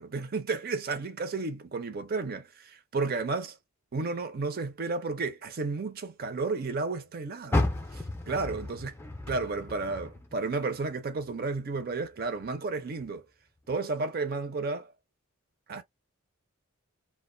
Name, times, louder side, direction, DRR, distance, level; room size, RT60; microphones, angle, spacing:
voice 1, 0.0-3.5 3.9-7.7 7.9-8.9 9.3-13.3 13.7-14.9 15.7-15.8, right 3 dB, 45° right, 0.5 m, -32 dB
Car, 7.5-10.8 11.2-12.5 13.0-13.1 13.7-13.8, left 2 dB, 10° left, 0.4 m, -33 dB
2.5 x 2.2 x 2.5 m
head